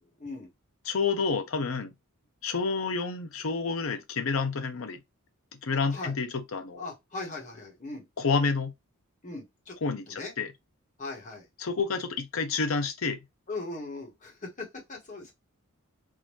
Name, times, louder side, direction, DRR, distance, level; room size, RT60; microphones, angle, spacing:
voice 1, 0.9-1.9 2.4-5.0 5.6-6.8 8.2-8.7 9.8-10.5 11.6-13.2, left 4 dB, 65° left, 0.7 m, -29 dB
voice 2, 6.8-8.1 9.2-9.7 10.1-10.3 11.0-11.5 13.5-15.3, left 3 dB, 35° left, 1.5 m, -39 dB
3.7 x 2.6 x 3.1 m
head